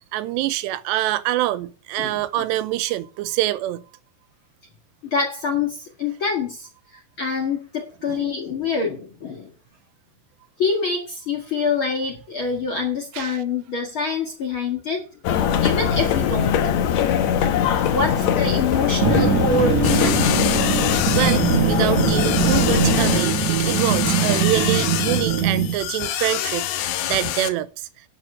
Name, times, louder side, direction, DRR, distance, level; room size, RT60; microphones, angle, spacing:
voice 1, 0.0-3.8 8.1-8.3 13.1-13.4 15.5-15.7 21.1-27.9, right 15 dB, 90° right, 2.9 m, -25 dB
voice 2, 5.0-9.5 10.6-15.0 15.5-16.7 17.9-20.6, left 4 dB, 50° left, 1.7 m, -26 dB
sound 1, 15.2-23.2, left 8 dB, 90° left, 1.5 m, -21 dB
sound 2, 19.0-25.8, right 8 dB, 65° right, 1.9 m, -22 dB
sound 3, 19.8-27.5, left 12 dB, 75° left, 2.8 m, -26 dB
12.0 x 7.5 x 6.5 m
omnidirectional pair, 4.9 m